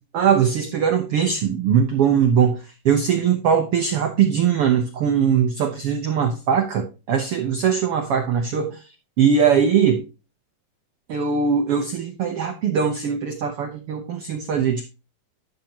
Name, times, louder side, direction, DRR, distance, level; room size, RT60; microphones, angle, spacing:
voice 1, 0.1-8.8 9.2-10.0 11.1-14.9, right 7 dB, 70° right, 1.4 m, -21 dB
12.0 x 6.4 x 2.9 m
omnidirectional pair, 3.8 m